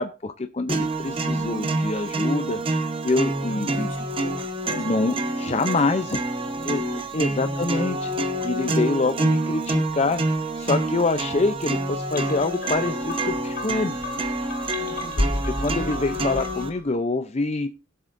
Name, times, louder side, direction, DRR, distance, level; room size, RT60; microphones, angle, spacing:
voice 1, 0.0-2.6 3.0-3.9 4.7-6.2 6.6-6.8 7.1-8.1 8.4-13.9 15.6-17.7, left 3 dB, 35° left, 8 dB, 0.5 m, -25 dB
sound 1, 0.7-16.7, right 2 dB, 30° right, 1.0 m, -27 dB
voice 2, 3.4-6.1 6.4-6.8 7.1-7.5 14.7-16.0, equal, 80° left, 2 dB, 3.2 m, -42 dB
sound 2, 12.1-16.9, left 1 dB, 50° left, 1.2 m, -32 dB
21.0 x 7.8 x 2.6 m, 0.32 s
head